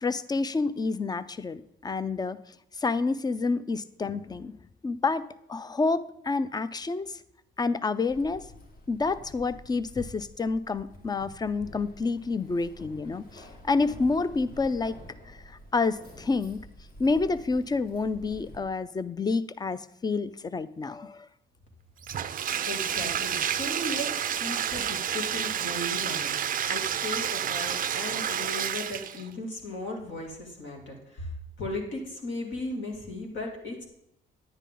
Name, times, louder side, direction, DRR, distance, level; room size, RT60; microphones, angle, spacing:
voice 1, 0.0-2.4 2.8-4.5 4.8-7.2 7.6-8.4 8.9-14.9 15.3-16.6 17.0-21.3, left 3 dB, 20° left, 16 dB, 0.5 m, -29 dB
Keys jangling, 8.1-18.6, left 1 dB, 50° left, 2.0 m, -48 dB
Bathtub (filling or washing), 22.0-29.3, right 9 dB, 45° right, 0.4 m, -30 dB
voice 2, 22.7-26.3 26.7-31.3 31.6-33.9, left 1 dB, 70° left, 0 dB, 2.7 m, -36 dB
10.0 x 9.8 x 3.8 m, 0.78 s
cardioid pair, 90°, 20 cm